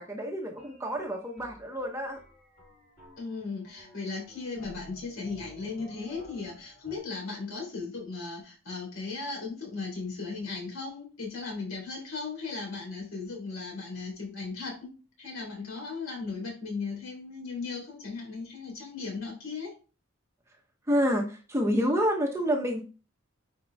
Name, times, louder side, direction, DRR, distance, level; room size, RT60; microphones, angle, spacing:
voice 1, 0.0-2.2 20.9-22.8, equal, 15° right, 2 dB, 1.0 m, -28 dB
sound 1, 0.6-7.0, equal, 40° left, 3.4 m, -53 dB
voice 2, 3.2-19.7, left 4 dB, 60° left, -1 dB, 3.8 m, -37 dB
9.4 x 4.7 x 3.5 m, 0.35 s
head